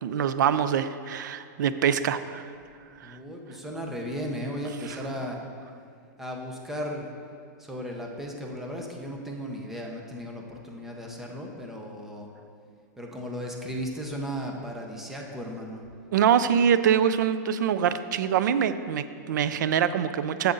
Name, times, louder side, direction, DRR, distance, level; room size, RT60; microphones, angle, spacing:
voice 1, 0.0-2.5 3.0-3.2 4.8-5.0 16.1-20.5, right 8 dB, 70° right, 12 dB, 0.4 m, -24 dB
voice 2, 3.0-5.4 6.2-7.1 7.6-12.3 13.0-15.8, equal, 5° right, 0 dB, 0.6 m, -35 dB
7.6 x 7.1 x 3.8 m, 2.4 s
supercardioid pair, 170°, 10 cm